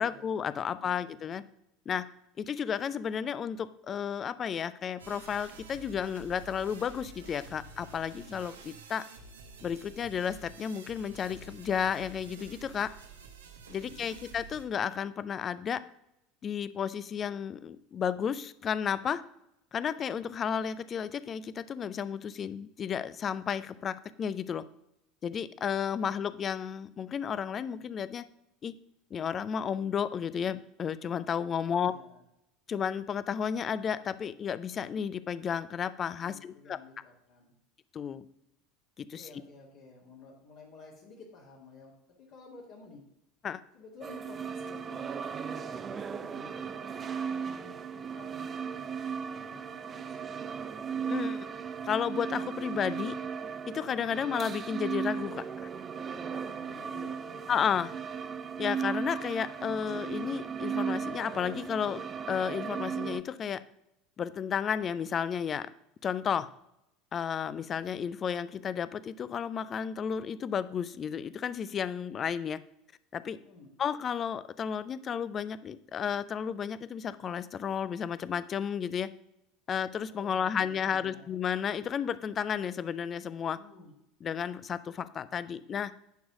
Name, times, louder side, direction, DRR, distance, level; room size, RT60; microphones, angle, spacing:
voice 1, 0.0-1.4 1.9-2.1 2.4-9.0 9.6-12.9 13.7-15.8 16.4-19.2 19.7-24.6 25.2-28.2 28.6-28.7 29.1-31.9 32.7-36.8 37.9-38.2 39.0-39.3 43.4-43.6 51.1-51.5 51.8-53.2 53.7-55.7 57.5-57.9 58.6-63.6 64.2-65.7 66.0-66.5 67.1-72.6 73.1-73.4 73.8-79.1 79.7-83.6 84.2-85.9, left 7 dB, 35° left, 15 dB, 0.6 m, -32 dB
voice 2, 0.8-1.4 13.7-14.2 26.0-26.2 31.3-32.2 36.2-37.5 39.1-41.9 42.2-43.0 43.7-50.7 56.0-57.8 73.3-73.7 80.1-81.3 83.5-83.9, left 3 dB, 60° left, -5 dB, 2.3 m, -53 dB
sound 1, 5.0-14.7, right 4 dB, 75° right, 1.1 m, -50 dB
sound 2, 44.0-63.2, right 6 dB, 30° right, 0.6 m, -36 dB
10.5 x 4.7 x 6.0 m, 0.83 s
figure-of-eight pair, 75°, 0 cm